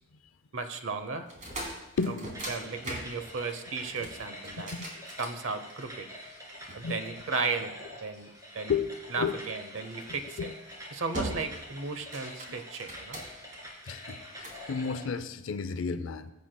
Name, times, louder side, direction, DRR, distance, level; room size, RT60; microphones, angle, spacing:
voice 1, 0.5-1.3 2.1-4.7 5.2-6.1 6.7-8.3 8.5-8.7 9.1-10.5 10.9-13.2, right 4 dB, 70° right, 8 dB, 0.9 m, -35 dB
sound 1, 1.2-6.0 6.7-8.0 9.8-10.0 10.5-10.8 11.1-11.7 12.0-13.6 14.1-14.7, right 1 dB, 35° right, 3.0 m, -40 dB
voice 2, 2.0-2.5 4.6-4.7 6.8-7.0 8.7-8.9 9.2-9.4 10.4-10.5 12.5-12.6 13.9-16.3, left 5 dB, 65° left, 11 dB, 0.5 m, -32 dB
sound 2, 2.3-15.2, equal, 15° right, 2.1 m, -46 dB
21.0 x 8.4 x 2.2 m, 0.99 s
head